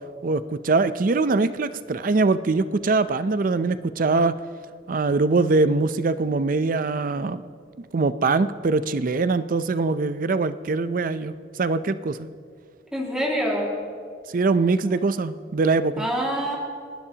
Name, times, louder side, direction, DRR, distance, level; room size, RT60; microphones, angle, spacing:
voice 1, 0.2-4.4 4.9-7.4 7.9-11.3 11.6-12.3 14.3-16.1, right 3 dB, 50° right, 13 dB, 0.5 m, -22 dB
voice 2, 12.9-13.7 14.9-15.0 16.0-16.6, equal, 5° right, -4 dB, 2.1 m, -26 dB
29.0 x 11.5 x 2.9 m, 2.1 s
head